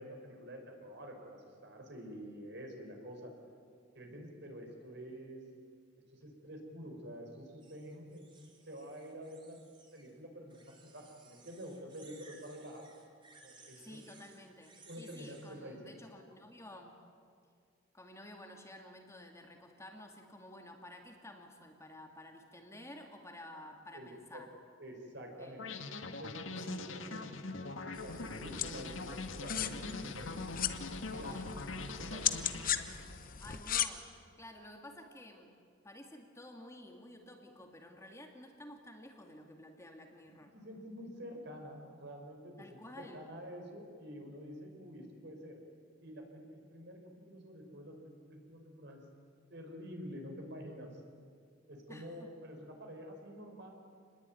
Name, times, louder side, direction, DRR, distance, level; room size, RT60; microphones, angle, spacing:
voice 1, 0.0-3.3 3.9-5.4 6.1-8.3 8.6-9.6 9.9-12.9 13.4-14.0 14.9-16.0 23.9-24.4 24.8-25.6 26.2-27.4 27.7-30.5 31.1-31.4 31.7-32.3 32.7-32.9 40.5-45.6 46.0-49.0 49.5-51.0 51.7-53.7, equal, 60° right, 3 dB, 5.6 m, -48 dB
sound 1, 7.6-10.1 10.5-15.6, right 4 dB, 25° right, 4.1 m, -61 dB
voice 2, 13.8-17.0 17.9-24.5 25.4-25.7 26.7-26.8 31.3-31.5 33.4-35.5 35.8-40.5 42.6-43.2 51.9-52.3, left 1 dB, 15° left, 2 dB, 2.5 m, -52 dB
sound 2, 25.6-33.3, left 3 dB, 80° left, 1.9 m, -42 dB
sound 3, 27.9-33.9, left 10 dB, 45° left, 1.2 m, -38 dB
28.5 x 20.5 x 9.5 m, 2.2 s
head